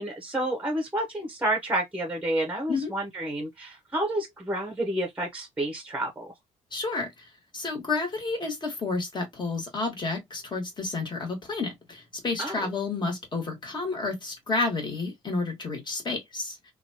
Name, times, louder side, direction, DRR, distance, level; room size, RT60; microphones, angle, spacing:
voice 1, 0.0-6.3 12.4-12.7, right 1 dB, 10° right, 0.8 m, -30 dB
voice 2, 6.7-7.3 7.5-16.6, left 3 dB, 35° left, 1.5 m, -30 dB
2.9 x 2.3 x 2.7 m
cardioid pair, 105°, 13 cm